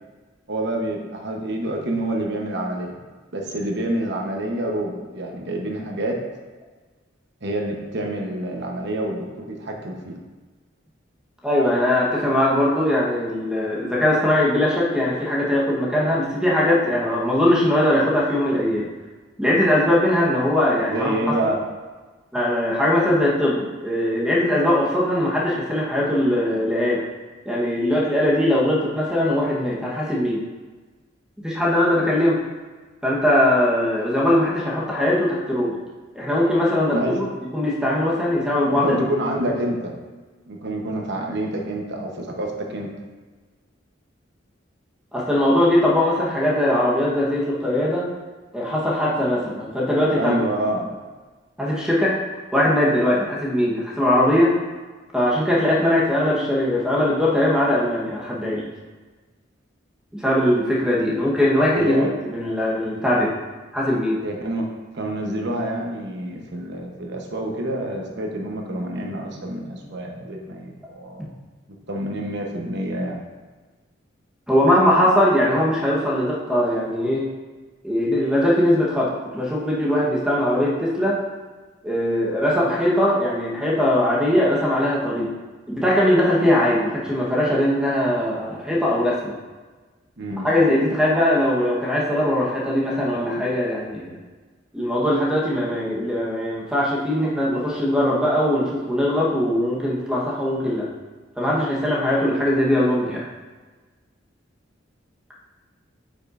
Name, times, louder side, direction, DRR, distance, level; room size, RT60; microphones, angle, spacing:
voice 1, 0.5-3.0 3.3-6.2 7.4-10.1 20.9-21.6 36.9-37.2 38.6-39.9 40.4-42.9 50.1-50.9 61.7-62.1 64.2-64.7 64.9-71.3 71.9-73.2 90.2-90.5, right 1 dB, 65° right, 0 dB, 1.1 m, -27 dB
voice 2, 11.4-18.9 19.4-21.4 22.3-27.0 27.4-30.4 31.4-32.4 33.0-35.7 36.1-39.0 45.1-48.1 48.5-50.3 51.6-52.2 52.5-54.5 55.1-58.7 60.1-63.3 63.7-64.2 74.5-77.2 77.8-81.2 81.8-85.3 85.7-89.4 90.4-94.2 94.7-100.9 101.4-103.2, left 1 dB, 5° right, -5 dB, 1.2 m, -20 dB
8.9 x 5.4 x 2.6 m, 1.3 s
head